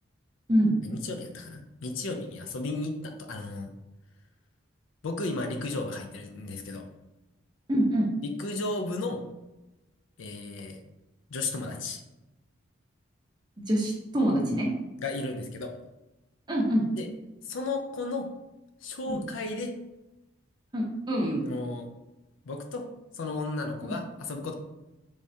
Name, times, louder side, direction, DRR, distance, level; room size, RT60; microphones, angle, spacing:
voice 1, 0.8-3.7 5.0-6.9 8.2-9.2 10.2-10.8 11.3-12.0 15.0-15.7 17.0-17.1 17.4-18.3 18.8-19.7 21.4-21.9 22.5-22.9 23.1-24.5, left 3 dB, 75° left, 4 dB, 0.5 m, -34 dB
voice 2, 7.7-8.1 13.7-14.7 16.5-16.9 19.1-19.2 20.7-21.4, equal, 20° right, -2 dB, 0.6 m, -25 dB
3.4 x 3.2 x 2.7 m, 1.0 s
head